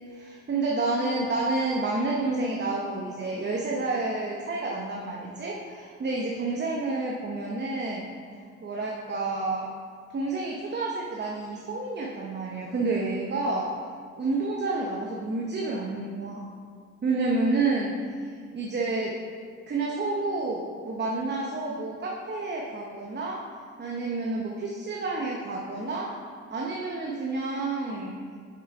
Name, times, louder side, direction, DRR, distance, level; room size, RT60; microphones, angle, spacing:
voice 1, 0.0-8.0 8.6-9.7 10.1-13.7 14.2-16.4 17.0-17.9 18.2-19.2 19.7-23.4 23.8-26.1 26.5-28.1, right 3 dB, 35° right, -2 dB, 0.9 m, -29 dB
6.1 x 6.0 x 4.8 m, 2.1 s
cardioid pair, 90°, 30 cm